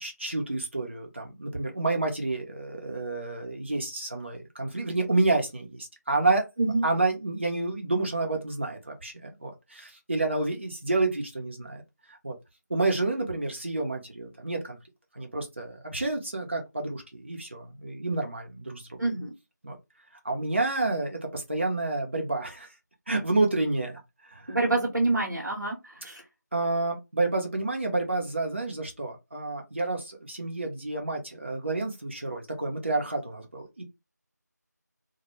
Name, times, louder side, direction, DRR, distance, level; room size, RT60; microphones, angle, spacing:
voice 1, 0.0-6.5 6.8-11.8 12.1-12.3 12.7-14.8 15.1-19.0 19.6-19.8 20.2-22.7 23.1-24.0 24.3-24.6 26.5-33.8, right 2 dB, 40° right, 0.6 m, -29 dB
voice 2, 19.0-19.3 24.5-26.2, right 2 dB, 85° right, 0.8 m, -27 dB
2.1 x 2.0 x 3.0 m
figure-of-eight pair, 170°, 10 cm